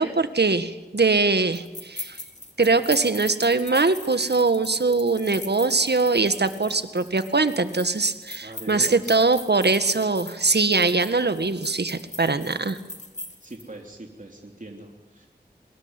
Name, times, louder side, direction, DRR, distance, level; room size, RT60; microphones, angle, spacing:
voice 1, 0.0-2.2 2.6-12.8, right 3 dB, 75° right, 10 dB, 1.7 m, -22 dB
sound 1, 1.5-13.6, left 2 dB, 40° left, 3.5 m, -40 dB
voice 2, 8.4-9.2 13.4-15.3, right 1 dB, 50° right, 1 dB, 3.3 m, -41 dB
25.0 x 20.5 x 9.8 m, 1.1 s
wide cardioid pair, 40°, 17 cm